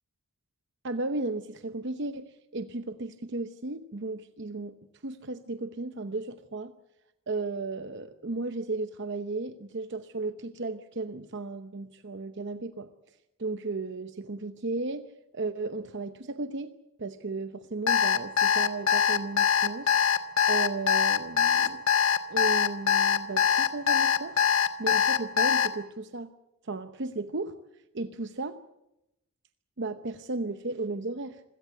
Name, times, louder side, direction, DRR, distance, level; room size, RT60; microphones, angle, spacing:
voice 1, 0.8-4.8 5.0-6.7 7.3-16.7 17.0-20.0 20.5-21.8 22.3-24.4 24.8-26.3 26.6-27.6 27.9-28.6 29.8-31.4, right 3 dB, 50° right, 10 dB, 0.8 m, -35 dB
Alarm, 17.9-25.7, left 8 dB, 65° left, 1.3 m, -23 dB
26.5 x 17.0 x 8.2 m, 0.90 s
head